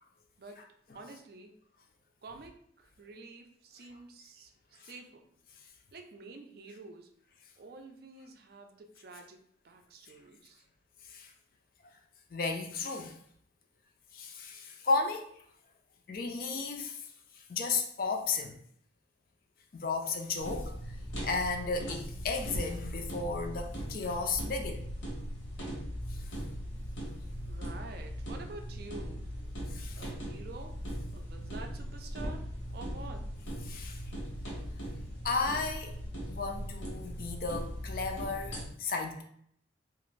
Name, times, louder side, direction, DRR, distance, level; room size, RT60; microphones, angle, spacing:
voice 1, 0.9-1.5 2.2-5.2 5.9-7.1 7.6-10.6 27.5-29.3 30.0-30.8 31.1-32.4 32.7-33.3, right 3 dB, 55° right, 0.4 m, -49 dB
voice 2, 12.3-13.2 14.1-15.3 16.1-17.0 17.5-18.6 19.7-20.7 21.2-24.8 29.7-30.0 33.7-34.0 35.2-35.9 36.3-39.2, left 4 dB, 50° left, 0.4 m, -34 dB
sound 1, 20.4-38.7, equal, 85° left, 1.0 m, -39 dB
2.5 x 2.4 x 3.1 m
head